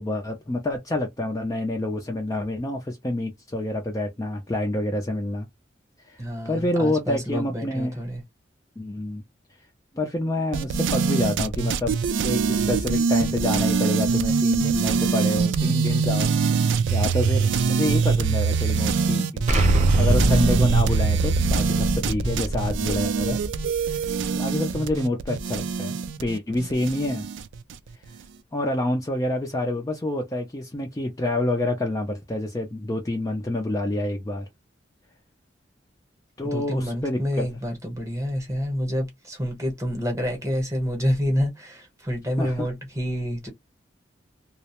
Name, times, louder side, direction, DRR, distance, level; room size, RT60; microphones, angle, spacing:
voice 1, 0.0-5.5 6.1-6.2 6.5-8.0 8.8-9.2 9.9-12.0 12.2-19.5 20.0-23.4 23.9-27.3 28.5-34.5 36.4-37.5 42.4-42.7, left 1 dB, 20° left, 0.4 m, -27 dB
voice 2, 6.2-8.2 36.4-43.5, equal, 15° right, 0.9 m, -28 dB
sound 1, 10.5-27.8, right 5 dB, 85° right, 0.3 m, -23 dB
Explosion, 19.5-24.3, equal, 40° right, 0.6 m, -25 dB
2.4 x 2.0 x 2.8 m
head